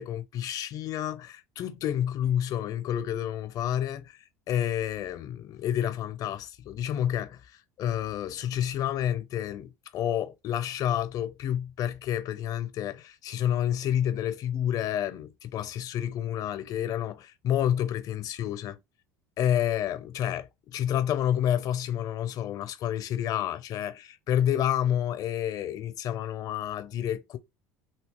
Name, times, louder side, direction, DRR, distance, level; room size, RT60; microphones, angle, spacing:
voice 1, 0.0-4.2 4.5-7.5 7.8-18.8 19.4-20.4 20.7-27.4, left 10 dB, 50° left, 0.6 m, -29 dB
2.8 x 2.8 x 3.5 m
hypercardioid pair, 85°, 8 cm